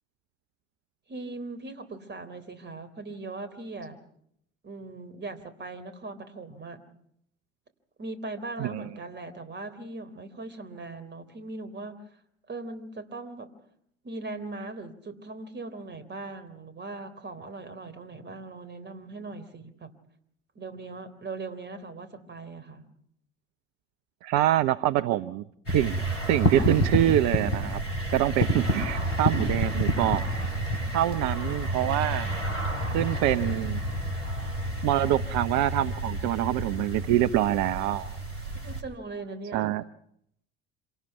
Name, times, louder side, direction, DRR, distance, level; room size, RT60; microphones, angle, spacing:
voice 1, 1.1-4.0 4.6-6.8 8.0-12.0 12.5-13.5 14.0-19.9 20.6-22.9 38.6-39.7, right 3 dB, 30° right, 9 dB, 3.6 m, -39 dB
voice 2, 24.2-27.8 28.1-30.2 30.9-32.3 32.9-33.8 34.8-38.1 39.5-39.8, right 13 dB, 50° right, 14 dB, 0.8 m, -25 dB
sound 1, 25.7-38.8, right 1 dB, 85° left, 3.2 m, -29 dB
27.0 x 18.5 x 5.8 m, 0.72 s
figure-of-eight pair, 60°, 36 cm